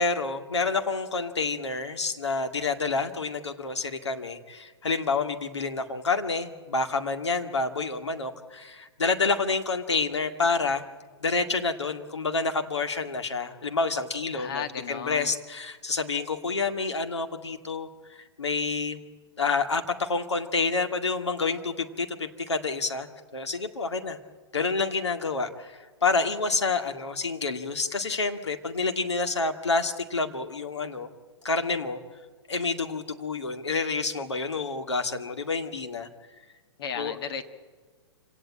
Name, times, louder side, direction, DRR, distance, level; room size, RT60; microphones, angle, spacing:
voice 1, 0.0-10.8 11.2-19.0 19.4-23.1 23.3-24.2 24.5-31.1 31.4-32.0 32.5-36.1 37.0-37.2, left 4 dB, 80° left, 6 dB, 2.1 m, -28 dB
voice 2, 14.3-15.3 36.8-37.5, left 7 dB, 60° left, 8 dB, 1.7 m, -34 dB
26.0 x 17.5 x 8.8 m, 1.4 s
figure-of-eight pair, 110°, 14 cm